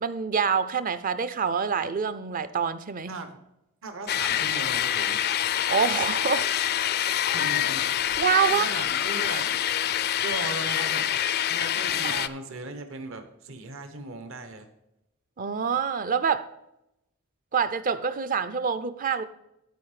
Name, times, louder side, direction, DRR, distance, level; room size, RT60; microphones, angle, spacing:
voice 1, 0.0-3.2 5.7-6.5 8.2-8.7 12.0-12.2 15.4-16.5 17.5-19.2, right 6 dB, 40° right, 13 dB, 0.5 m, -26 dB
voice 2, 3.1-3.4 3.8-5.2 7.3-8.2 8.5-9.6 10.2-11.1 11.5-14.7, right 2 dB, 65° right, 7 dB, 1.1 m, -38 dB
sound 1, 4.1-12.3, left 10 dB, 45° left, 0.4 m, -26 dB
12.0 x 4.8 x 4.9 m, 0.87 s
head